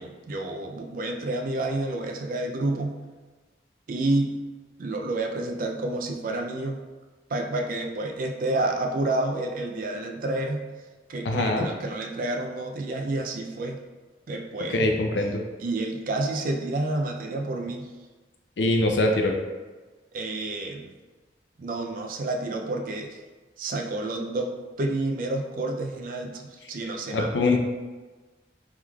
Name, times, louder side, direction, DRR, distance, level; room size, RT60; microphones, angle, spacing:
voice 1, 0.0-3.0 3.9-4.4 4.8-6.8 7.3-10.7 11.1-13.8 14.3-14.9 15.6-17.9 20.1-20.9 21.6-23.2 23.6-27.6, right 2 dB, 50° right, 3 dB, 0.3 m, -29 dB
voice 2, 11.2-11.7 14.7-15.4 18.6-19.4 27.1-27.6, left 2 dB, 85° left, 3 dB, 0.5 m, -23 dB
3.5 x 3.1 x 2.3 m, 1.3 s
head